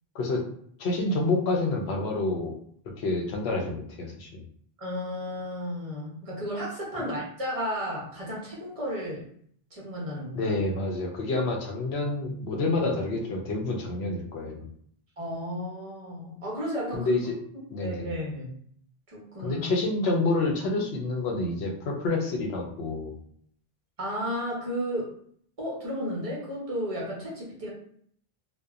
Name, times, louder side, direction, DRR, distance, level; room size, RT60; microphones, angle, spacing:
voice 1, 0.8-2.6 3.0-4.4 10.3-14.7 16.9-17.3 17.7-18.1 19.4-23.2, left 2 dB, 85° left, 1 dB, 0.9 m, -28 dB
voice 2, 4.8-9.2 9.7-10.5 15.2-17.1 17.8-18.5 19.1-19.6 24.0-25.2 25.6-27.7, equal, 35° right, -4 dB, 0.9 m, -33 dB
2.7 x 2.2 x 2.3 m, 0.63 s
omnidirectional pair, 1.0 m